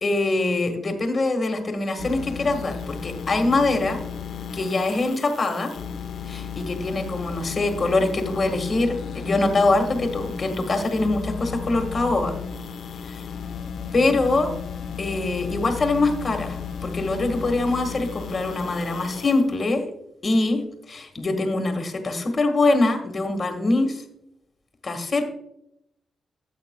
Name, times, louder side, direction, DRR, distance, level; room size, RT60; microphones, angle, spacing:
voice 1, 0.0-4.0 4.5-5.7 6.3-12.3 13.9-14.5 15.0-19.8 20.2-20.6 20.9-24.0 24.8-25.2, left 2 dB, 40° left, 6 dB, 1.6 m, -23 dB
sound 1, 2.0-19.5, left 6 dB, 75° left, 0.9 m, -34 dB
14.0 x 8.2 x 2.2 m, 0.79 s
cardioid pair, 115°, 0 cm